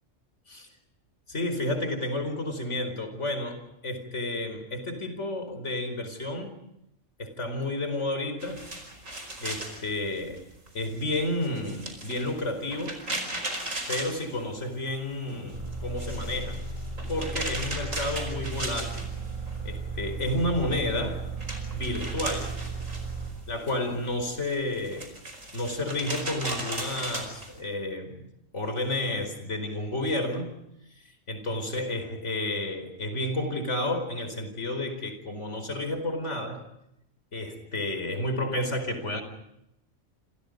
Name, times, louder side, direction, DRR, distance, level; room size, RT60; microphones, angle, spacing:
voice 1, 1.3-6.6 7.2-8.7 9.4-10.4 10.7-13.0 13.9-16.6 17.1-19.1 19.6-21.2 21.7-22.6 23.5-25.1 25.5-30.6 31.0-36.6 37.3-39.2, left 1 dB, 65° left, 8 dB, 4.9 m, -31 dB
sound 1, 8.4-14.9 15.2-19.6 19.9-27.6, right 1 dB, 85° right, 5.4 m, -37 dB
sound 2, 15.5-23.3, right 4 dB, 35° right, 8.1 m, -35 dB
28.5 x 27.5 x 5.2 m, 0.82 s
omnidirectional pair, 1.3 m